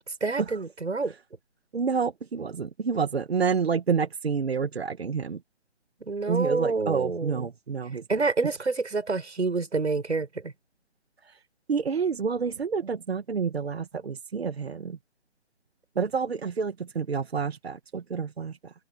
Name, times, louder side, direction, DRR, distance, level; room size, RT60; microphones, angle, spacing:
voice 1, 0.2-1.1 6.1-7.5 8.1-10.5, right 3 dB, 85° right, 7.9 m, -27 dB
voice 2, 1.7-5.4 6.3-8.1 11.2-11.4 11.7-15.0 15.9-18.7, right 6 dB, 65° right, 1.7 m, -28 dB
open air
hypercardioid pair, 165°, 34 cm